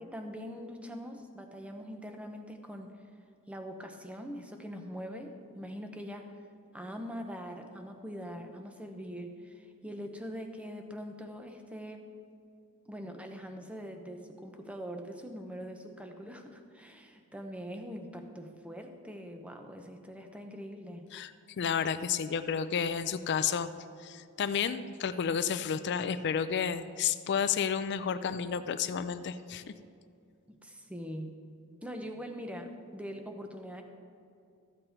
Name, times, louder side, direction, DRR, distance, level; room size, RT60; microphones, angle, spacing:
voice 1, 0.0-3.0 3.5-6.3 6.7-12.0 12.9-21.1 30.5-31.3 31.8-33.8, equal, 5° right, 5 dB, 0.7 m, -43 dB
voice 2, 21.6-23.7 24.0-29.7, left 7 dB, 50° left, 12 dB, 0.4 m, -31 dB
14.0 x 7.8 x 4.4 m, 2.4 s
head